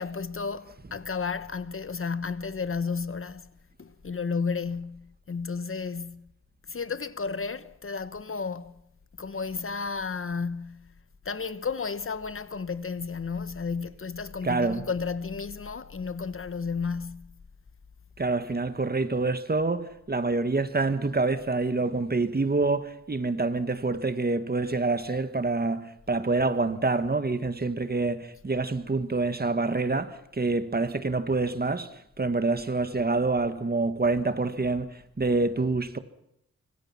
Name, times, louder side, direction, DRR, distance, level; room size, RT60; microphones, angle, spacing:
voice 1, 0.0-3.5 3.8-6.3 6.7-8.8 9.2-10.9 11.2-17.4, left 5 dB, 45° left, 1.1 m, -33 dB
voice 2, 14.4-14.8 18.2-36.0, right 3 dB, 30° right, 1.8 m, -27 dB
25.5 x 24.0 x 5.9 m
wide cardioid pair, 120°, 29 cm